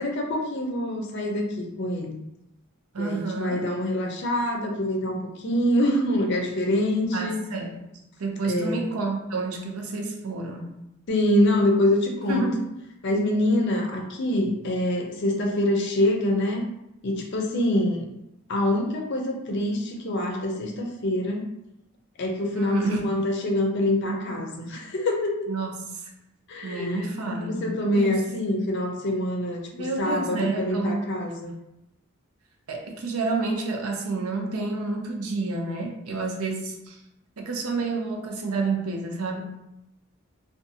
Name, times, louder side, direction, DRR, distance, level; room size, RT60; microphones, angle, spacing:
voice 1, 0.0-2.2 3.0-7.4 8.4-8.8 11.1-12.5 13.0-16.7 17.0-18.1 18.5-21.4 22.2-25.5 26.5-31.5, left 1 dB, 55° left, 1 dB, 0.5 m, -25 dB
voice 2, 2.9-3.7 7.1-7.9 8.2-10.8 12.3-12.7 22.5-23.1 24.1-24.6 25.5-26.1 26.6-28.2 29.8-31.1 32.7-37.0 37.4-39.4, right 3 dB, 80° right, 1 dB, 0.5 m, -29 dB
2.6 x 2.2 x 2.7 m, 0.86 s
head